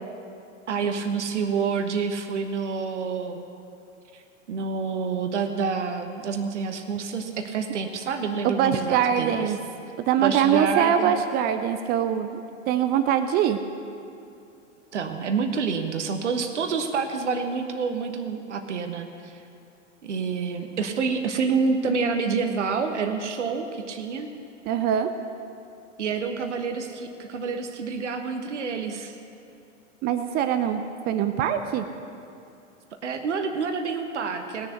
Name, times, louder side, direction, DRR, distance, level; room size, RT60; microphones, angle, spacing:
voice 1, 0.7-3.4 4.1-4.2 4.5-9.5 10.2-11.1 14.9-19.4 20.0-24.3 26.0-29.1 33.0-34.7, right 5 dB, 65° right, 6 dB, 1.2 m, -28 dB
voice 2, 8.4-9.6 10.0-13.6 24.7-25.1 30.0-30.8 31.1-31.9, right 9 dB, 25° right, 9 dB, 0.5 m, -23 dB
19.0 x 7.0 x 8.1 m, 2.7 s
figure-of-eight pair, 90°, 37 cm